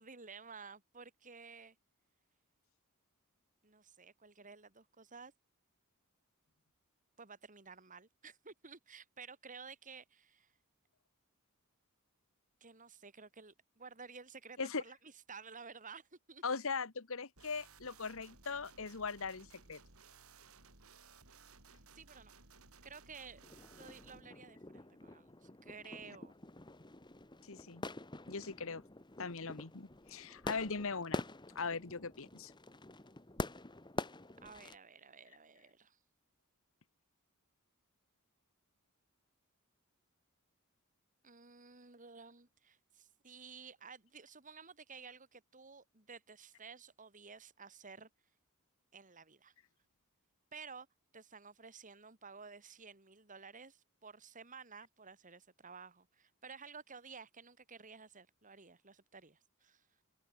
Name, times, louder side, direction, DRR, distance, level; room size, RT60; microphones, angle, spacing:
voice 1, 0.0-1.8 3.6-5.3 7.2-10.5 12.6-16.4 21.7-22.3 22.8-23.4 23.7-26.3 34.4-36.0 41.2-48.1 48.9-49.5 50.5-50.9 51.1-59.9, right 5 dB, 35° right, 3.1 m, -53 dB
voice 2, 16.4-19.8 27.5-27.8 28.3-28.8 29.2-31.2 31.5-32.5, left 4 dB, 65° left, 1.4 m, -40 dB
sound 1, 17.4-24.2, right 4 dB, 75° right, 5.7 m, -60 dB
sound 2, 23.4-34.8, left 2 dB, 20° left, 1.5 m, -46 dB
head